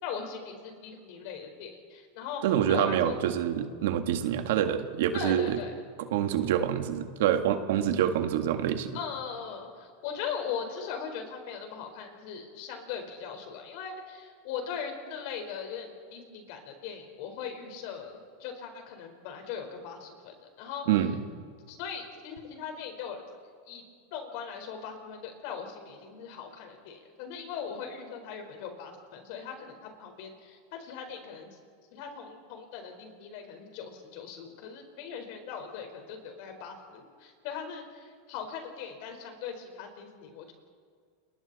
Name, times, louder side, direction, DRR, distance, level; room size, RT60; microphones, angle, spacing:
voice 1, 0.0-2.4 2.7-3.1 5.1-5.8 8.9-20.9 21.7-23.2 23.7-23.8 24.1-31.6 31.9-40.5, left 7 dB, 60° left, 4 dB, 4.5 m, -39 dB
voice 2, 2.4-5.6 6.0-9.0 20.9-21.2, right 10 dB, 75° right, 7 dB, 1.8 m, -26 dB
29.5 x 22.5 x 4.2 m, 2.1 s
supercardioid pair, 135°, 0 cm